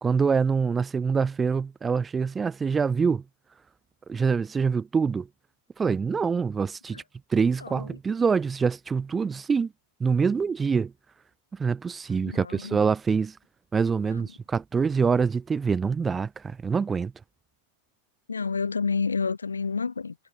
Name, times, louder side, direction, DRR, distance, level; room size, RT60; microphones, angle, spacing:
voice 1, 0.0-3.2 4.1-5.3 5.8-7.0 7.3-9.7 10.0-10.9 11.5-13.4 13.7-17.1, right 5 dB, 15° right, 3.0 m, -25 dB
voice 2, 7.6-8.0 12.1-12.8 14.1-14.3 18.3-20.2, left 5 dB, 75° left, 5.5 m, -30 dB
figure-of-eight pair, 90°, 0 cm